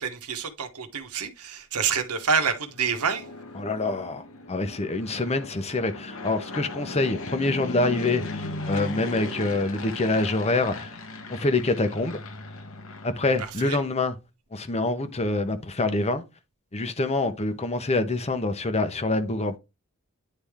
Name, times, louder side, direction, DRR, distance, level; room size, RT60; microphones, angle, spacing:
voice 1, 0.0-3.2 13.6-13.8, right 6 dB, 85° right, 1.1 m, -27 dB
Fixed-wing aircraft airplane, 2.7-13.7, left 2 dB, 65° left, 1.0 m, -37 dB
voice 2, 3.5-10.9 11.3-12.2 13.0-14.2 14.5-16.2 16.7-19.6, left 2 dB, 30° left, 0.8 m, -26 dB
10.0 x 3.4 x 3.5 m
head